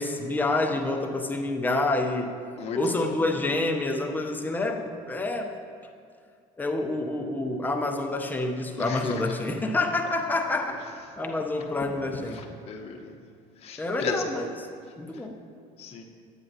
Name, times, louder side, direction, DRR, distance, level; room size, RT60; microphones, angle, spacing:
voice 1, 0.0-2.3 2.7-5.6 6.6-10.8 11.2-12.4 13.8-14.5 15.0-15.4, left 2 dB, 10° left, 3 dB, 0.5 m, -28 dB
voice 2, 2.6-3.2 8.8-9.3 12.3-13.1 13.6-14.3 15.8-16.0, left 5 dB, 40° left, 1 dB, 0.8 m, -34 dB
9.8 x 8.9 x 2.6 m, 2.2 s
cardioid pair, 145°, 15 cm